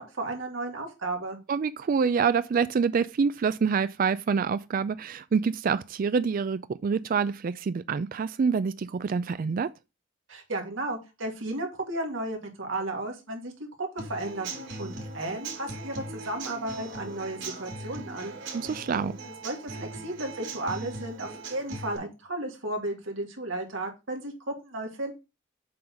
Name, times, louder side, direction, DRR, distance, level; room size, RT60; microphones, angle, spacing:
voice 1, 0.0-1.4 10.3-13.5 13.8-18.3 19.4-25.1, right 2 dB, 85° right, 2.3 m, -34 dB
voice 2, 1.5-9.7 18.5-19.2, right 5 dB, 45° right, 0.3 m, -26 dB
Human voice / Acoustic guitar / Drum, 14.0-22.0, right 2 dB, 65° right, 3.2 m, -39 dB
7.6 x 3.9 x 5.8 m
head